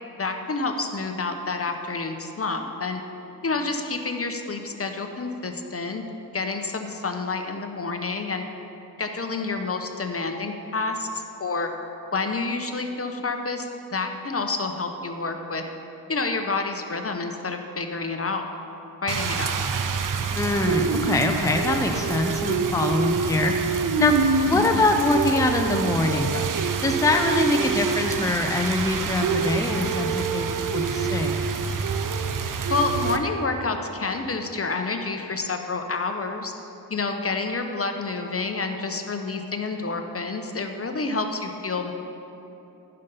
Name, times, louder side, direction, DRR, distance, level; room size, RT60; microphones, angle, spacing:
voice 1, 0.2-3.0 3.4-6.0 6.3-8.4 9.0-11.7 12.1-15.6 16.1-18.5 19.0-19.5 24.5-24.8 32.7-36.5 36.9-41.9, left 3 dB, 35° left, 5 dB, 0.9 m, -28 dB
Rain, 19.1-33.2, right 5 dB, 50° right, 0.7 m, -26 dB
voice 2, 20.3-26.5 26.8-31.4, left 2 dB, 10° left, 4 dB, 0.7 m, -24 dB
10.5 x 5.6 x 5.4 m, 3.0 s
supercardioid pair, 45°, 41 cm